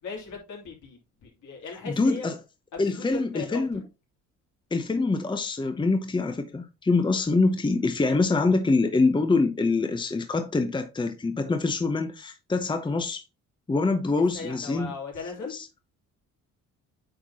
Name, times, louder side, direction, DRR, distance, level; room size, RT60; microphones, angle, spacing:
voice 1, 0.0-2.3 2.7-3.6 14.3-15.6, left 4 dB, 75° left, 3.2 m, -38 dB
voice 2, 1.8-2.4 2.8-3.8 4.7-13.2 13.7-14.9 15.5-15.7, left 3 dB, 15° left, 0.8 m, -25 dB
8.8 x 4.4 x 2.8 m
cardioid pair, 90°, 30 cm